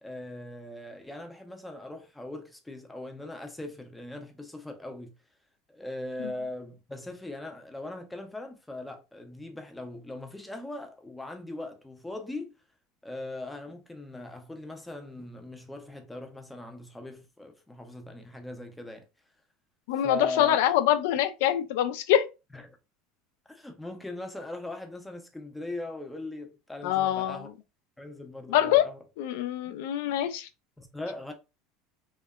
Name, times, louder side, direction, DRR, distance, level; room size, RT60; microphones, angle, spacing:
voice 1, 0.0-5.1 5.7-12.5 13.0-19.1 20.0-20.6 22.5-22.8 23.5-27.5 28.0-29.0 29.7-29.8 30.8-31.3, left 2 dB, 5° left, 0.4 m, -39 dB
voice 2, 19.9-22.3 26.8-27.5 28.5-28.8 29.2-30.5, left 12 dB, 75° left, 0.3 m, -25 dB
2.7 x 2.1 x 2.2 m
supercardioid pair, 150°, 0 cm